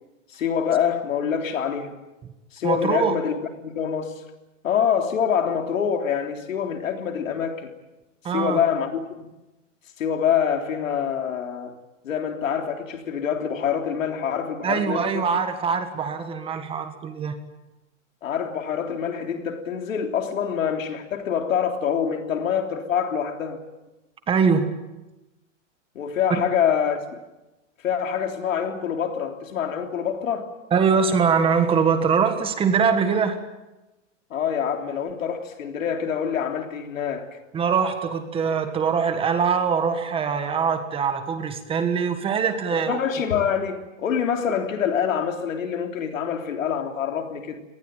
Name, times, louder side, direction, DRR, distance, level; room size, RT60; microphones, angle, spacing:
voice 1, 0.3-2.0 2.5-3.3 3.6-4.1 4.6-7.8 8.3-9.2 10.0-11.8 12.0-15.3 18.2-23.6 26.0-27.2 27.8-30.5 34.3-37.3 42.7-47.6, left 8 dB, 90° left, 3.5 m, -25 dB
voice 2, 2.6-3.1 8.2-8.6 14.6-17.4 24.3-24.7 30.7-33.4 37.5-43.0, right 6 dB, 15° right, 1.6 m, -22 dB
25.5 x 19.0 x 9.0 m
supercardioid pair, 160°, 38 cm